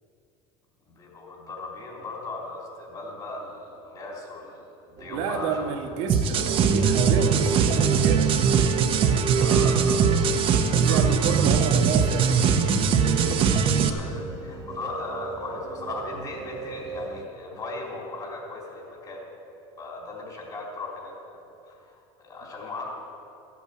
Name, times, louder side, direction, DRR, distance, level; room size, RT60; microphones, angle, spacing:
voice 1, 0.9-5.8 9.3-10.3 10.8-11.6 13.8-19.3 19.8-22.9, left 2 dB, 35° left, -3 dB, 3.5 m, -38 dB
sound 1, 5.0-17.2, right 5 dB, 30° right, 1.5 m, -33 dB
voice 2, 5.1-8.3 10.6-12.3, right 6 dB, 70° right, 4 dB, 1.6 m, -30 dB
sound 2, 6.1-13.9, right 6 dB, 45° right, 1.0 m, -21 dB
14.0 x 8.5 x 8.4 m, 2.7 s
supercardioid pair, 130°, 13 cm